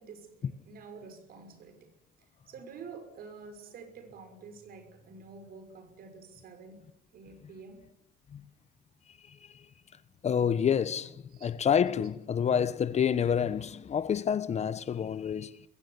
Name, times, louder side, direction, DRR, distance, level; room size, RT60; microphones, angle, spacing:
voice 1, 0.0-1.9 2.5-7.8 11.3-11.6, right 5 dB, 60° right, 6.0 m, -49 dB
voice 2, 10.2-11.2 11.4-15.7, left 8 dB, 40° left, 1.1 m, -28 dB
22.0 x 16.5 x 9.8 m
cardioid pair, 110°, 17 cm